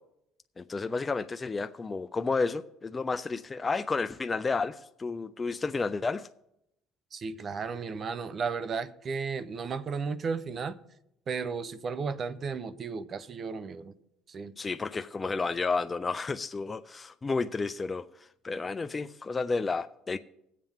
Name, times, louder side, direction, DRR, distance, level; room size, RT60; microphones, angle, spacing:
voice 1, 0.6-6.3 14.6-20.2, left 4 dB, 25° left, 0.4 m, -31 dB
voice 2, 7.1-10.8 11.3-14.0 14.3-14.5, right 5 dB, 40° right, 0.7 m, -34 dB
20.0 x 7.5 x 3.6 m
cardioid pair, 100°, 0 cm